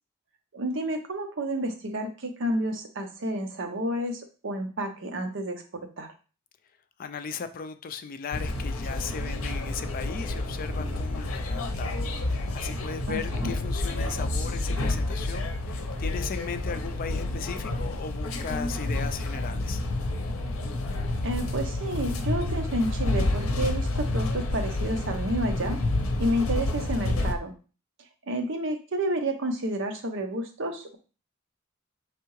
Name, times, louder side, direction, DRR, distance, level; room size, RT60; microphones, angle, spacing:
voice 1, 0.5-5.6 6.0-6.1 13.1-13.5 21.2-25.8 26.2-27.5 28.3-31.0, right 1 dB, 60° right, 6 dB, 0.7 m, -30 dB
voice 2, 7.0-19.8, left 6 dB, 40° left, 9 dB, 0.4 m, -37 dB
sound 1, 8.3-27.3, left 2 dB, 80° left, 0.7 m, -29 dB
4.7 x 3.3 x 3.0 m, 0.36 s
head